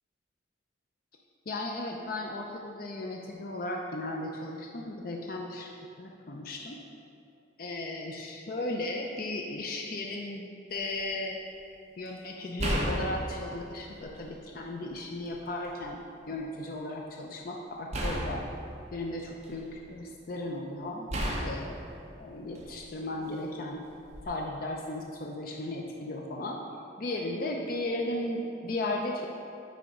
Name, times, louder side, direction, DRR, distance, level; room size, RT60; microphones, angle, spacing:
voice 1, 1.5-5.7 6.0-6.8 7.6-11.4 12.0-18.4 18.9-21.9 22.2-23.8 24.2-26.6 27.0-29.3, left 1 dB, 50° left, 0 dB, 0.5 m, -36 dB
sound 1, 10.7-11.0 12.6-14.4 14.9-15.8 17.9-19.9 21.1-23.0 24.0-24.3, equal, 35° right, 0.9 m, -34 dB
9.2 x 3.4 x 4.9 m, 2.6 s
head